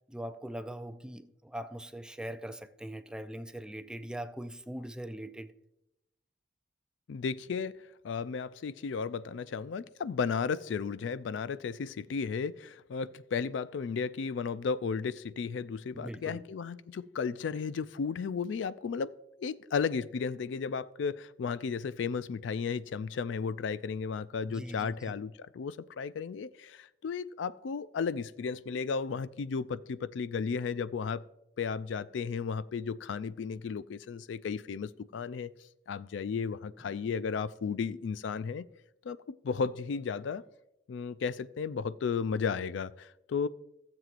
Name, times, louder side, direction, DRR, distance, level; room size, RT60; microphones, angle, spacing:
voice 1, 0.1-5.5 15.9-16.4 24.5-25.2, right 1 dB, 5° right, 0.4 m, -41 dB
voice 2, 7.1-7.7 8.0-19.1 19.4-31.2 31.6-35.5 35.9-38.7 39.0-40.4 40.9-43.5, left 5 dB, 70° left, 0.4 m, -34 dB
15.5 x 7.5 x 2.5 m
head